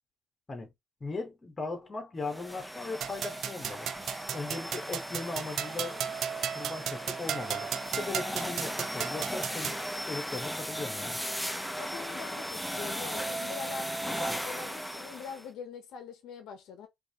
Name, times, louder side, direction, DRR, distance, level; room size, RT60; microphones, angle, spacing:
voice 1, 1.0-3.9 4.3-6.1 6.5-7.7 7.9-9.8 10.1-11.2, left 3 dB, 30° left, 1.4 m, -38 dB
sound 1, 2.2-15.5, equal, ahead, 0.5 m, -37 dB
sound 2, 3.0-9.8, right 9 dB, 70° right, 0.3 m, -36 dB
voice 2, 11.8-16.9, left 6 dB, 85° left, 0.7 m, -43 dB
4.8 x 2.8 x 2.9 m
cardioid pair, 90°, 0 cm